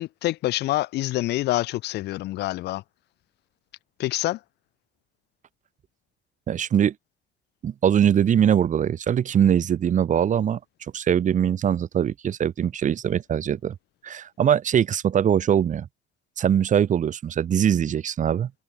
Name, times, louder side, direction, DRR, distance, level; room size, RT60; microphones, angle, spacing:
voice 1, 0.0-2.8 4.0-4.4, left 17 dB, 80° left, 2.5 m, -26 dB
voice 2, 6.5-6.9 7.6-10.6 10.9-13.7 14.0-15.9 16.4-18.5, right 9 dB, 45° right, 2.2 m, -22 dB
cardioid pair, 110°, 17 cm